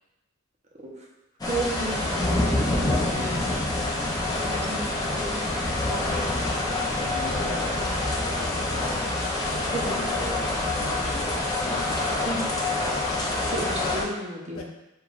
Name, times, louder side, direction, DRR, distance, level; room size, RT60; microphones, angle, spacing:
voice 1, 0.7-1.0 1.4-3.7 4.4-5.4 9.7-10.0 12.2-12.5 13.1-14.6, right 2 dB, 30° right, -3 dB, 0.7 m, -34 dB
sound 1, 1.4-14.0, left 2 dB, 15° left, 0.5 m, -26 dB
voice 2, 6.3-9.0 9.8-10.5 10.8-11.3 11.6-12.5 14.5-14.6, left 3 dB, 75° left, -1 dB, 0.8 m, -40 dB
6.7 x 2.4 x 2.4 m, 0.96 s
head